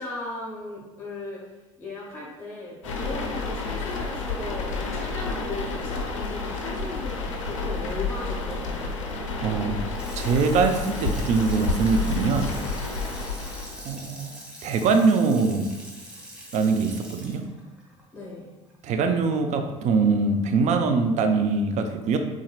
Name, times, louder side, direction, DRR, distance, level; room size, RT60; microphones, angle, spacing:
voice 1, 0.0-1.5 1.8-8.9 18.1-18.5, left 2 dB, 15° left, -5 dB, 1.2 m, -37 dB
sound 1, 2.8-13.9, left 3 dB, 85° left, 0.4 m, -30 dB
voice 2, 9.4-9.7 10.1-12.5 13.8-15.7 16.5-17.4 18.8-22.2, right 4 dB, 50° right, 6 dB, 0.4 m, -23 dB
Water tap faucet / Sink (filling or washing), 9.7-19.0 19.4-19.5, equal, 5° right, 0.8 m, -43 dB
4.0 x 2.4 x 2.3 m, 1.1 s
hypercardioid pair, 65°, 16 cm